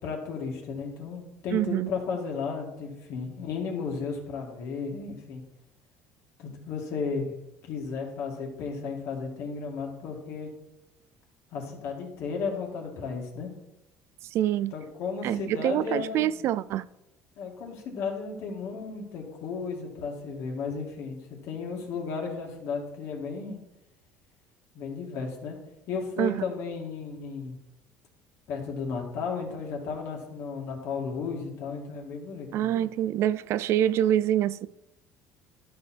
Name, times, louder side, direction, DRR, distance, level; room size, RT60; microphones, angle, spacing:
voice 1, 0.0-5.4 6.4-7.3 7.6-10.5 11.5-13.5 14.7-16.3 17.4-23.6 24.7-25.6 25.9-27.6 28.5-32.7, left 5 dB, 65° left, 2.3 m, -34 dB
voice 2, 1.5-1.9 14.3-14.7 15.2-16.8 26.2-26.4 32.5-34.7, right 11 dB, 60° right, 0.4 m, -26 dB
12.5 x 4.8 x 4.4 m
cardioid pair, 110°, 5 cm